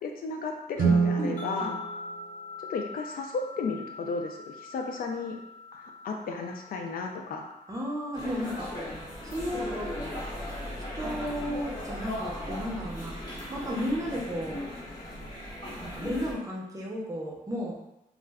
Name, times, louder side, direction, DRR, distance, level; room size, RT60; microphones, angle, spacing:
voice 1, 0.0-1.8 2.7-5.4 5.7-7.5, left 4 dB, 75° left, 3 dB, 0.4 m, -34 dB
Guitar, 0.7-3.3, right 5 dB, 75° right, 0.5 m, -29 dB
voice 2, 1.2-1.7 7.7-8.7 9.2-9.9 10.9-13.2 13.5-14.6 15.8-17.7, equal, 20° right, -3 dB, 0.6 m, -34 dB
sound 1, 1.4-10.6, left 4 dB, 55° left, 0.8 m, -45 dB
sound 2, 8.1-16.3, left 1 dB, 25° left, 0.9 m, -37 dB
2.4 x 2.1 x 3.4 m, 0.88 s
wide cardioid pair, 150°, 15 cm